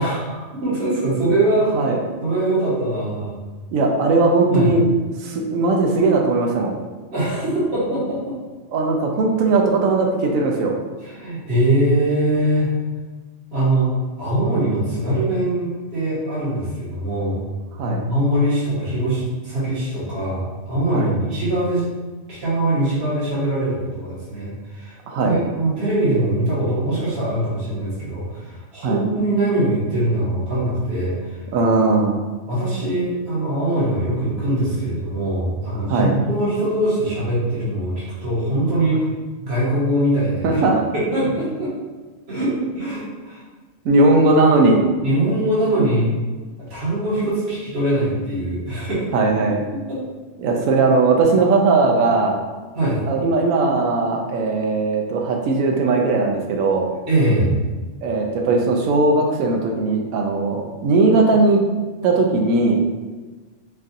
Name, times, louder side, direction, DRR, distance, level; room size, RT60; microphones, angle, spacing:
voice 1, 0.0-1.9 2.2-3.3 4.5-4.7 7.1-8.4 11.0-12.7 13.5-17.4 17.8-21.9 22.3-31.4 32.5-39.1 39.4-40.6 40.9-41.7 42.3-43.4 45.0-46.1 46.6-49.6 49.9-50.0 52.7-53.0 57.1-57.5, right 1 dB, 55° right, -8 dB, 1.7 m, -22 dB
voice 2, 3.7-4.8 5.2-6.7 8.7-10.7 17.8-18.0 20.9-21.1 25.1-25.4 28.8-29.0 31.5-32.2 35.9-36.1 40.4-40.8 43.8-44.8 49.1-49.6 50.4-52.4 53.1-56.9 58.0-61.6 62.0-62.8, right 3 dB, 85° right, 1 dB, 1.0 m, -18 dB
5.3 x 2.5 x 2.7 m, 1.3 s
omnidirectional pair, 1.4 m